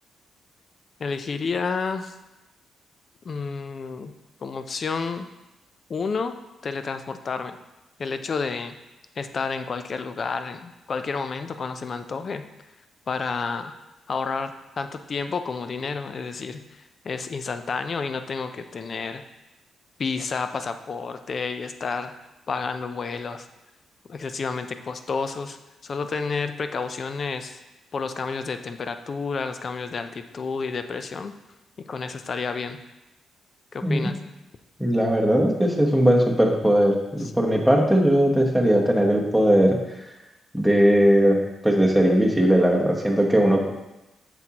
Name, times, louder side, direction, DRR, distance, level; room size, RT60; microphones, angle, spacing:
voice 1, 1.0-2.1 3.2-4.1 4.4-5.3 5.9-6.4 6.6-7.6 8.0-8.8 9.2-12.4 13.1-13.8 14.1-19.2 20.0-22.1 22.5-23.5 24.1-25.6 25.8-27.6 27.9-31.3 31.8-32.8 33.7-34.2 37.2-37.3, left 5 dB, 45° left, 9 dB, 0.5 m, -30 dB
voice 2, 34.8-39.8 40.5-43.7, equal, ahead, 0 dB, 1.1 m, -19 dB
7.6 x 6.1 x 2.9 m, 0.98 s
cardioid pair, 115°, 0 cm